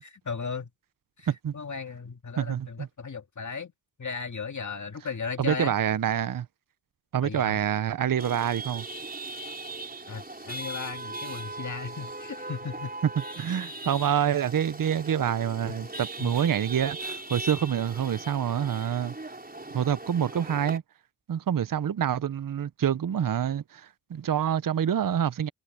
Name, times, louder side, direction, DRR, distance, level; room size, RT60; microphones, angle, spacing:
voice 1, 0.0-0.7 1.2-3.7 4.0-5.8 7.2-7.6 10.1-12.9 15.7-15.8 16.2-16.3, left 5 dB, 45° left, 2.1 m, -36 dB
voice 2, 2.4-2.9 5.4-6.5 7.1-8.9 13.4-19.1 19.7-20.8 21.3-25.5, right 9 dB, 50° right, 0.8 m, -27 dB
Chatter / Vehicle horn car horn honking / Traffic noise roadway noise, 8.2-20.8, right 2 dB, 20° right, 5.7 m, -39 dB
cardioid pair, 45°, 41 cm